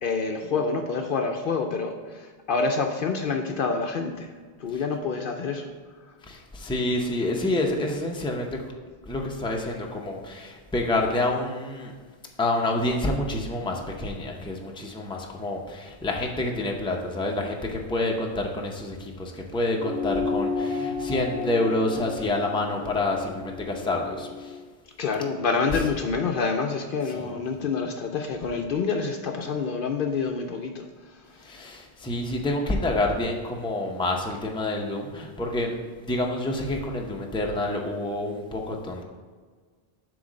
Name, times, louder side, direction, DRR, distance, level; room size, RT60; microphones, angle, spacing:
voice 1, 0.0-4.3 4.6-5.7 25.0-31.2, left 4 dB, 60° left, 4 dB, 0.7 m, -27 dB
voice 2, 6.2-8.7 9.1-11.9 12.4-24.6 25.7-25.9 27.0-27.3 31.4-39.0, left 2 dB, 5° left, 0 dB, 0.6 m, -28 dB
sound 1, 19.7-24.5, left 4 dB, 55° right, 1.6 m, -32 dB
7.8 x 3.2 x 6.2 m, 1.5 s
omnidirectional pair, 1.1 m